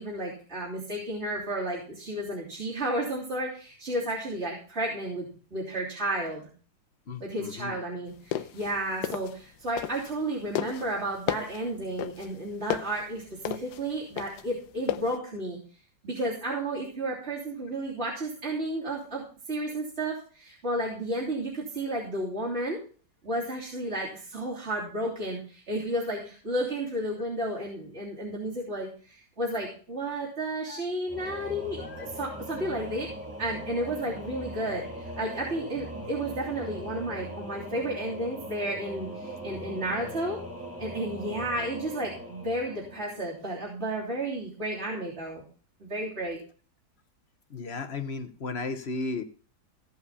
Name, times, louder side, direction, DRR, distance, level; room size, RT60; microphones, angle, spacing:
voice 1, 0.0-6.5 7.2-15.6 16.0-22.8 23.2-33.1 33.4-40.4 40.8-45.4 45.8-46.4, right 1 dB, 40° right, -6 dB, 3.6 m, -32 dB
voice 2, 7.1-7.8 30.7-30.8 31.8-32.1 47.5-49.2, left 3 dB, 45° left, 10 dB, 1.2 m, -35 dB
sound 1, 8.1-10.2 10.5-15.2, left 11 dB, 80° left, 1.3 m, -33 dB
Singing / Musical instrument, 31.1-43.6, right 1 dB, 10° right, 1.7 m, -40 dB
16.0 x 5.6 x 5.6 m, 0.40 s
omnidirectional pair, 1.8 m